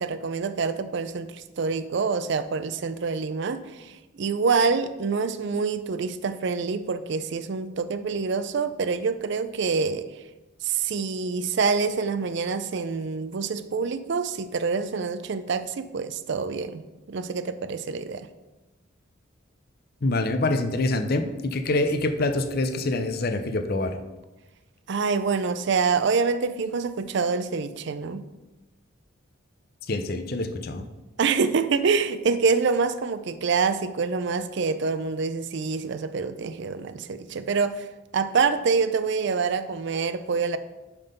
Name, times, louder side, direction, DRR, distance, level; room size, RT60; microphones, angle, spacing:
voice 1, 0.0-10.1 10.6-18.3 24.9-28.2 31.2-37.9 38.1-40.6, right 5 dB, 60° right, 12 dB, 0.4 m, -26 dB
voice 2, 20.0-24.0 29.9-30.8, left 2 dB, 50° left, 8 dB, 0.6 m, -25 dB
5.8 x 5.4 x 5.3 m, 1.1 s
head